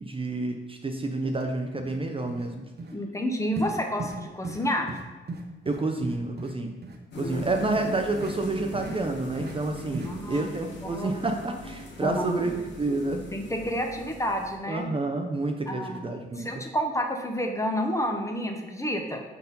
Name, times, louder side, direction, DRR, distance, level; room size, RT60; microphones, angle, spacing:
voice 1, 0.0-2.6 5.7-6.7 7.2-13.2 14.7-16.5, right 2 dB, 25° right, 4 dB, 0.5 m, -29 dB
sound 1, 1.3-1.4 1.8-2.0 2.3-2.5 2.8-2.9 3.6-3.7 4.0-4.2 4.4-4.6 4.9-5.0 5.3-6.5 6.8-7.0 7.4-7.5 8.2-8.3 8.7-9.0 9.4-9.5 9.9-10.1, right 3 dB, 55° right, 0.9 m, -37 dB
voice 2, 2.9-5.0 7.1-7.7 10.0-10.5 10.8-11.2 12.0-12.3 13.3-14.9 15.7-16.0 16.4-19.2, equal, 15° left, 3 dB, 0.8 m, -30 dB
sound 2, 7.1-14.6, left 2 dB, 60° left, 1.2 m, -42 dB
4.3 x 4.1 x 5.3 m, 1.2 s
cardioid pair, 80°, 20 cm